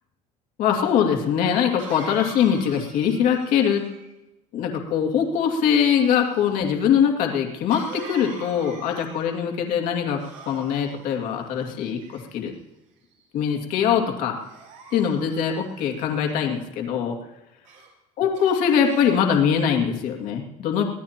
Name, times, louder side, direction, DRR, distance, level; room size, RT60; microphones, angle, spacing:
voice 1, 0.6-3.9 4.5-12.5 13.3-14.4 14.9-17.1 18.2-20.8, left 8 dB, 55° left, 2 dB, 2.4 m, -22 dB
Cough, 0.7-0.8 1.8-4.2 7.7-9.5 10.2-11.0 11.8-12.5 13.1-13.4 14.4-16.0 17.6-17.9 18.3-19.2, right 4 dB, 65° right, 5.1 m, -44 dB
24.0 x 17.5 x 3.0 m, 0.96 s
cardioid pair, 160°, 16 cm